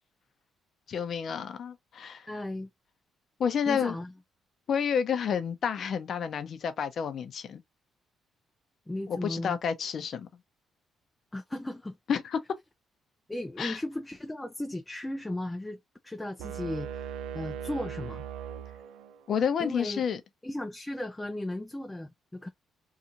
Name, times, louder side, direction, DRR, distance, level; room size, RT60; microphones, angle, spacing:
voice 1, 0.9-2.3 3.4-4.0 4.7-7.6 9.1-10.3 12.1-12.4 13.6-13.8 19.3-20.2, left 7 dB, 60° left, 0.6 m, -30 dB
voice 2, 2.3-2.7 3.7-4.1 8.9-9.6 11.3-12.0 13.3-18.3 19.6-20.0 20.4-22.5, left 1 dB, 10° left, 0.4 m, -36 dB
sound 1, 16.4-19.3, right 8 dB, 90° right, 0.3 m, -39 dB
2.8 x 2.4 x 2.4 m
cardioid pair, 90°, 0 cm